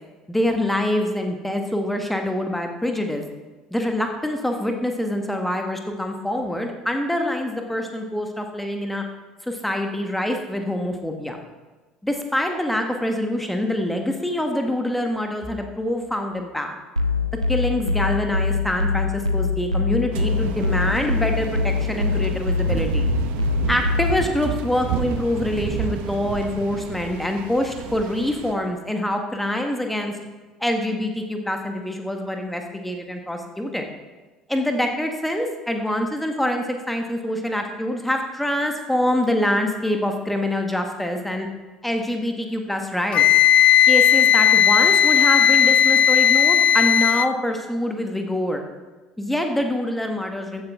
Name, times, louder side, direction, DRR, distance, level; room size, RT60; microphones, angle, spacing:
voice 1, 0.3-3.2 3.7-9.0 9.4-11.4 12.0-16.7 17.5-23.0 23.7-30.2 30.6-33.9 34.5-41.5 41.8-43.2 43.9-48.6 49.2-50.6, left 1 dB, 5° left, 4 dB, 1.4 m, -25 dB
sound 1, 17.0-24.3, left 4 dB, 90° right, 0.5 m, -24 dB
sound 2, 20.1-28.5, right 9 dB, 55° right, 0.9 m, -30 dB
Wind instrument woodwind instrument, 43.1-47.3, left 9 dB, 45° left, 0.4 m, -16 dB
15.0 x 10.5 x 3.6 m, 1.3 s
figure-of-eight pair, 60°, 3 cm